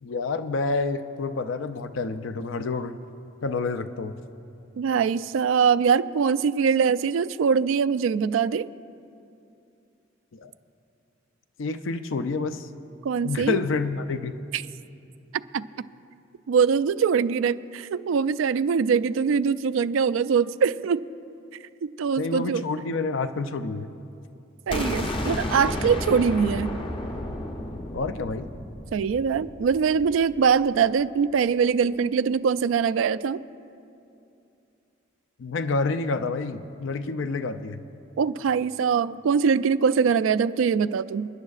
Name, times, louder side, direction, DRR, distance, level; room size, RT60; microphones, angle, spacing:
voice 1, 0.0-3.0 3.4-4.2 10.3-10.5 11.6-12.7 13.2-14.4 22.2-23.9 27.9-28.5 35.4-37.8, left 3 dB, 80° left, 10 dB, 0.5 m, -28 dB
voice 2, 4.8-8.7 13.0-13.6 14.5-14.6 15.5-15.6 16.5-21.0 21.8-22.6 24.7-26.8 28.9-33.4 38.2-41.3, right 6 dB, 85° right, 16 dB, 0.3 m, -23 dB
sound 1, 24.7-30.5, left 1 dB, 25° left, 0.6 m, -32 dB
28.5 x 10.5 x 2.5 m, 2.6 s
head